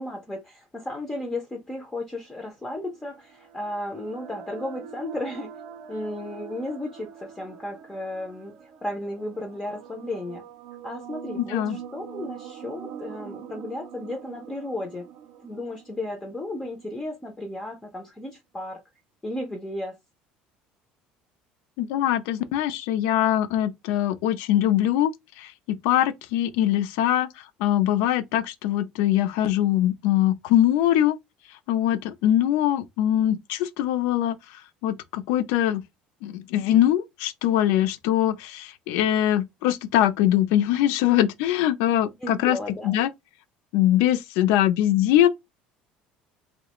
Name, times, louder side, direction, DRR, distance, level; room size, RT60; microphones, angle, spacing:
voice 1, 0.0-5.5 5.9-10.4 10.8-15.1 15.4-18.8 19.2-20.0 42.2-43.0, left 1 dB, 10° left, 0.4 m, -34 dB
sound 1, 2.8-16.9, right 8 dB, 60° right, 0.4 m, -43 dB
voice 2, 11.3-11.8 21.8-25.1 25.4-31.2 31.7-35.8 36.2-42.6 42.8-43.1 43.7-45.3, left 12 dB, 85° left, 0.3 m, -22 dB
2.3 x 2.0 x 2.8 m
cardioid pair, 160°, 3 cm